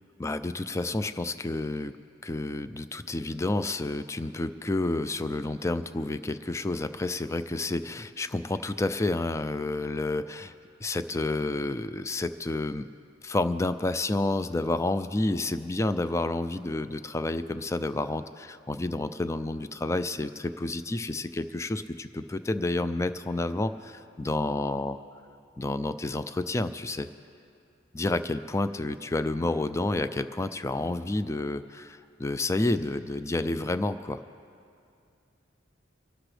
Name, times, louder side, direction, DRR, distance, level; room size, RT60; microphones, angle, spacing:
voice 1, 0.2-2.0 2.2-10.5 10.8-12.9 13.2-25.0 25.6-27.1 27.9-34.2, left 2 dB, 15° left, 12 dB, 0.4 m, -30 dB
24.5 x 12.0 x 3.3 m, 2.5 s
head